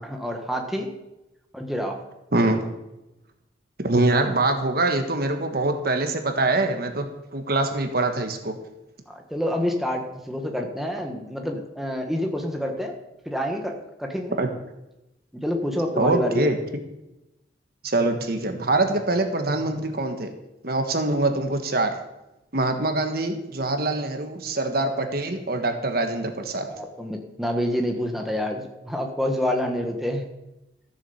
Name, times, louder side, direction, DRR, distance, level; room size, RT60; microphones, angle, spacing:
voice 1, 0.0-0.9 1.5-2.0 9.1-12.9 13.2-13.7 14.0-14.4 15.3-16.5 26.6-30.2, equal, ahead, 2 dB, 1.3 m, -27 dB
voice 2, 2.3-2.6 3.8-7.1 7.3-8.5 14.4-14.5 16.0-16.6 17.8-20.3 20.6-21.9 22.5-26.7, right 2 dB, 55° right, 6 dB, 1.5 m, -24 dB
14.0 x 7.4 x 7.1 m, 0.94 s
head